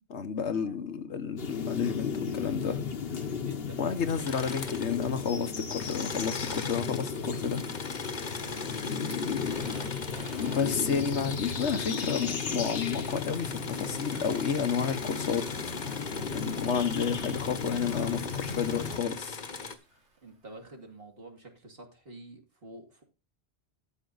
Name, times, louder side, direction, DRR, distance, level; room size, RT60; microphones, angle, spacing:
voice 1, 0.1-2.8 3.8-7.6 10.4-15.7 16.3-19.4, left 6 dB, 85° left, 1.4 m, -31 dB
sound 1, 1.4-19.0, left 6 dB, 60° left, 1.3 m, -35 dB
voice 2, 3.0-3.9 8.4-8.9 16.1-16.5 19.6-19.8 20.2-23.0, right 2 dB, 60° right, 2.8 m, -49 dB
Engine / Mechanisms, 4.0-5.3 5.6-19.8, left 4 dB, 45° left, 1.2 m, -40 dB
Fire, 7.2-20.3, right 2 dB, 90° right, 2.9 m, -51 dB
13.0 x 5.6 x 4.0 m
omnidirectional pair, 1.1 m